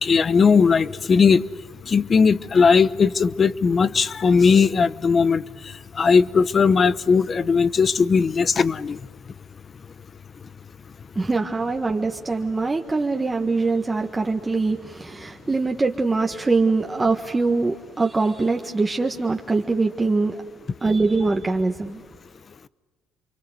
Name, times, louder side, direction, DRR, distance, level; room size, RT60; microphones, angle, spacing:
voice 1, 0.0-1.5 1.9-5.4 6.0-9.0, left 5 dB, 35° left, 16 dB, 0.9 m, -18 dB
voice 2, 11.1-20.4 20.8-22.0, right 3 dB, 20° right, 2 dB, 1.6 m, -23 dB
29.0 x 24.0 x 8.0 m, 1.4 s
cardioid pair, 100°, 0 cm